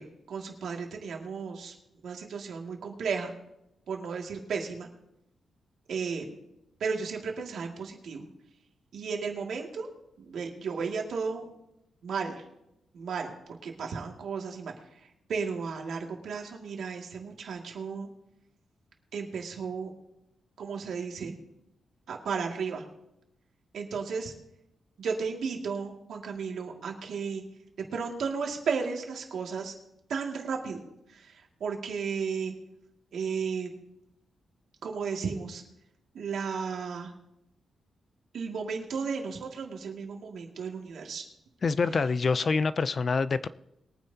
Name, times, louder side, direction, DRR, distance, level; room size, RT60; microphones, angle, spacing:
voice 1, 0.0-1.7 2.0-3.3 3.9-4.9 5.9-6.3 6.8-8.3 8.9-9.9 10.2-11.5 12.0-12.4 12.9-13.3 13.6-14.7 15.3-18.1 19.1-19.9 20.6-21.4 22.1-22.8 23.7-24.3 25.0-27.4 27.9-29.7 30.1-30.8 31.1-31.3 31.6-32.5 33.1-33.7 34.8-35.6 36.1-37.1 38.3-41.3, right 5 dB, 75° right, 1 dB, 2.2 m, -34 dB
voice 2, 41.6-43.5, left 4 dB, 40° left, 15 dB, 0.5 m, -26 dB
22.0 x 9.3 x 2.8 m, 0.86 s
cardioid pair, 115°, 0 cm